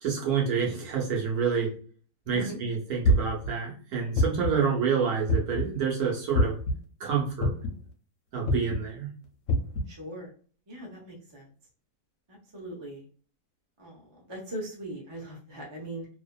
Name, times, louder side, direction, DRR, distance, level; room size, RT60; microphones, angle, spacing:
voice 1, 0.0-1.7 2.3-6.6 7.0-7.5 8.3-9.1, right 6 dB, 70° right, -2 dB, 1.2 m, -28 dB
sound 1, 3.0-3.5 4.2-4.6 5.3-5.7 6.3-6.7 7.4-7.8 8.5-8.8 9.5-9.8, equal, 65° left, 0.9 m, -24 dB
voice 2, 9.9-10.3 10.7-11.5 12.3-13.1 13.8-16.1, right 1 dB, 25° right, -3 dB, 0.6 m, -40 dB
2.7 x 2.5 x 2.2 m, 0.43 s
omnidirectional pair, 1.7 m